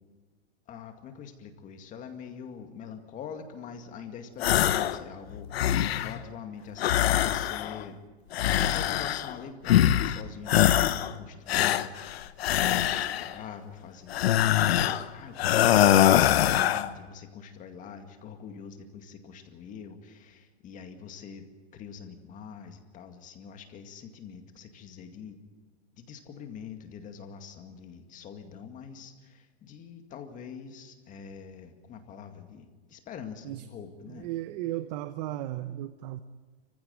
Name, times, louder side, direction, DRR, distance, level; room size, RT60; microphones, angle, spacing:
voice 1, 0.7-8.0 8.6-21.5 21.7-25.4 25.9-34.3, left 7 dB, 25° left, 6 dB, 2.1 m, -44 dB
sound 1, 4.4-5.0 5.3-6.2 6.8-7.8 8.3-9.3 9.7-10.2 10.5-11.1 11.5-13.3 14.1-15.0 15.4-16.9, left 12 dB, 70° left, 1.1 m, -23 dB
voice 2, 34.1-36.2, right 14 dB, 40° right, 12 dB, 0.9 m, -35 dB
25.5 x 15.5 x 9.2 m, 1.4 s
hypercardioid pair, 145°, 32 cm